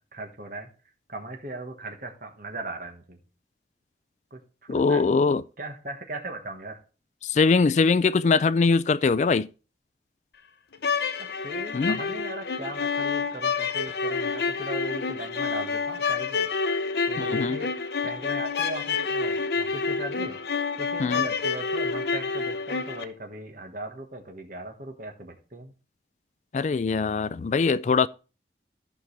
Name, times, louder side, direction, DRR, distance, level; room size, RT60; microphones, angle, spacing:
voice 1, 0.1-0.7 1.1-3.2 4.3-5.0 5.6-6.8 11.2-16.5 17.1-20.3 20.8-25.7, right 2 dB, 50° right, 1.5 m, -38 dB
voice 2, 4.7-5.4 7.2-9.5 11.7-12.0 17.2-17.6 21.0-21.3 26.5-28.1, left 4 dB, 40° left, 0.3 m, -22 dB
sound 1, 10.7-23.0, left 5 dB, 65° left, 0.7 m, -28 dB
14.0 x 5.2 x 3.3 m
head